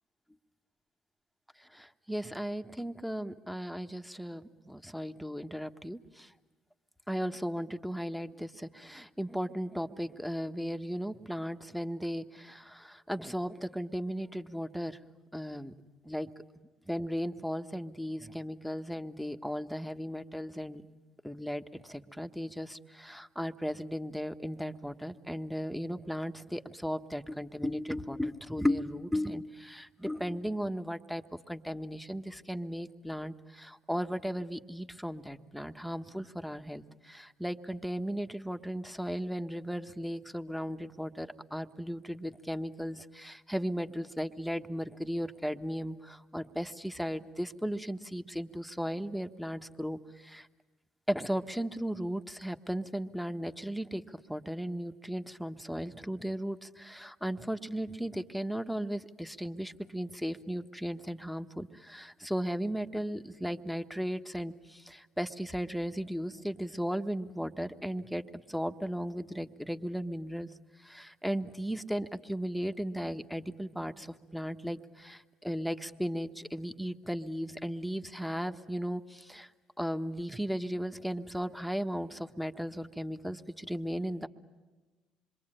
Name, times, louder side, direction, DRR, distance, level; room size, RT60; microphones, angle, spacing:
voice 1, 1.6-6.3 7.1-15.0 15.3-15.7 16.0-16.3 16.9-20.8 21.2-50.5 51.1-54.0 54.3-70.5 70.8-79.5 79.8-84.3, equal, ahead, 6 dB, 1.4 m, -36 dB
26.5 x 22.5 x 9.1 m, 1.2 s
hypercardioid pair, 60°, 2 cm